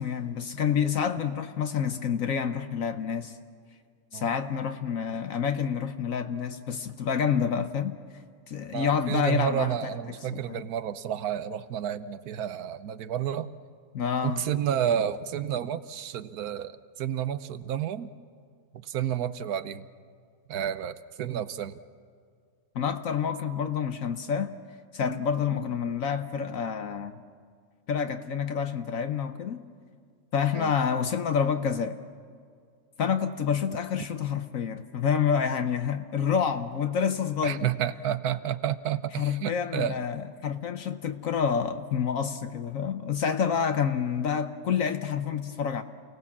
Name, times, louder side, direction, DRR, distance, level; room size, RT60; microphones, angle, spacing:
voice 1, 0.0-3.3 4.1-8.0 8.5-9.9 10.3-10.6 13.9-14.4 22.7-24.6 24.9-27.1 27.9-29.6 30.3-32.0 33.0-37.7 39.2-45.8, left 7 dB, 60° left, 9 dB, 1.1 m, -28 dB
voice 2, 8.7-13.5 14.2-18.1 18.7-19.8 20.5-21.8 25.0-25.2 25.5-25.7 30.5-30.7 37.4-40.0, right 10 dB, 75° right, 13 dB, 1.3 m, -30 dB
28.5 x 18.5 x 7.3 m, 2.1 s
omnidirectional pair, 1.7 m